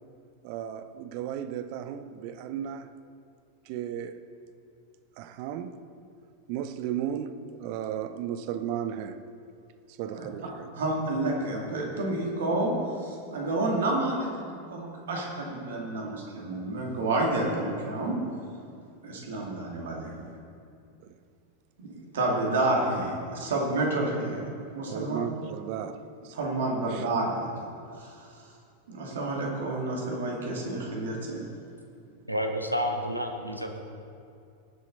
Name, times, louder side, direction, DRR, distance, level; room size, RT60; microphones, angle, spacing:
voice 1, 0.4-2.9 3.7-4.2 5.2-5.7 6.5-9.2 10.0-10.7 24.9-26.3 26.9-27.0, right 9 dB, 45° right, 0.6 m, -35 dB
voice 2, 10.7-18.2 19.0-20.1 21.8-21.9 22.1-24.4 24.7-25.2 26.3-27.7 28.0-28.5 28.9-31.5, right 2 dB, 60° right, 2.4 m, -29 dB
voice 3, 32.3-33.8, equal, 90° right, 1.1 m, -30 dB
18.5 x 7.4 x 4.0 m
figure-of-eight pair, 90°, 0 cm